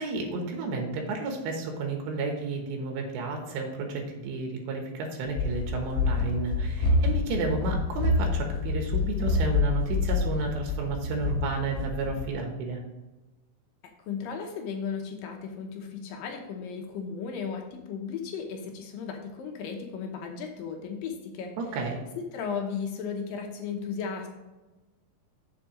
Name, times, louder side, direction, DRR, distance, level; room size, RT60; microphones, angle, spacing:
voice 1, 0.0-12.8 21.6-22.0, right 3 dB, 85° right, 2 dB, 3.4 m, -32 dB
Run, 5.3-12.3, left 3 dB, 55° left, 0.9 m, -27 dB
voice 2, 14.1-21.5 22.2-24.3, left 6 dB, 75° left, 3 dB, 2.2 m, -35 dB
8.2 x 7.2 x 3.1 m, 1.1 s
omnidirectional pair, 5.0 m